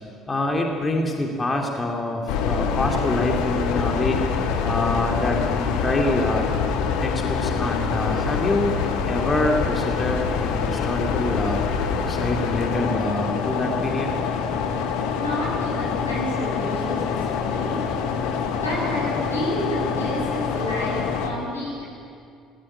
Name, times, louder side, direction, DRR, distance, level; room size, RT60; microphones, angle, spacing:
voice 1, 0.3-4.2 4.6-6.5 7.0-8.7 9.1-11.6 12.1-14.1, left 2 dB, 25° left, 1 dB, 2.7 m, -25 dB
sound 1, 2.3-21.3, left 6 dB, 65° left, 1.7 m, -25 dB
voice 2, 15.1-17.8 18.5-21.8, equal, 85° left, -5 dB, 6.8 m, -30 dB
18.5 x 18.0 x 8.6 m, 2.4 s
figure-of-eight pair, 55°, 0 cm